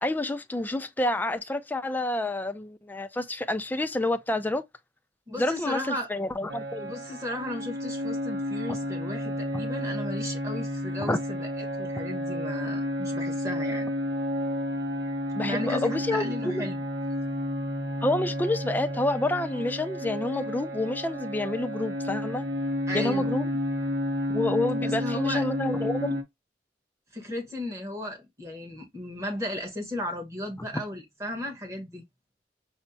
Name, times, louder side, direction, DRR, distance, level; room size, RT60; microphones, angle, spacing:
voice 1, 0.0-4.6 5.4-6.9 11.0-11.2 15.4-16.7 18.0-22.5 22.9-23.5 24.3-26.2, left 2 dB, 10° left, 0.3 m, -28 dB
voice 2, 5.3-6.1 6.8-13.9 15.4-16.8 22.9-23.3 24.8-25.4 27.1-32.0, left 1 dB, 20° right, 1.1 m, -35 dB
sound 1, 6.5-26.2, left 1 dB, 70° right, 0.8 m, -31 dB
5.4 x 2.1 x 2.6 m
head